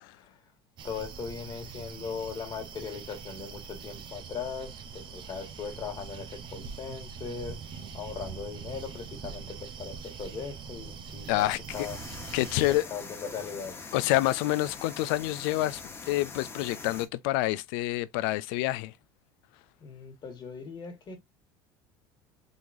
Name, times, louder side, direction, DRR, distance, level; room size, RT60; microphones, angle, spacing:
voice 1, 0.1-0.4 0.8-12.0 12.6-14.1 19.8-21.2, left 6 dB, 40° left, 1.6 m, -39 dB
sound 1, 0.8-12.8, right 6 dB, 45° right, 0.8 m, -43 dB
voice 2, 11.3-11.6 12.3-12.8 13.9-15.8 16.1-18.9, left 17 dB, 80° left, 0.4 m, -27 dB
sound 2, 11.7-17.1, left 4 dB, 25° left, 1.1 m, -43 dB
3.8 x 3.0 x 2.6 m
supercardioid pair, 100°, 11 cm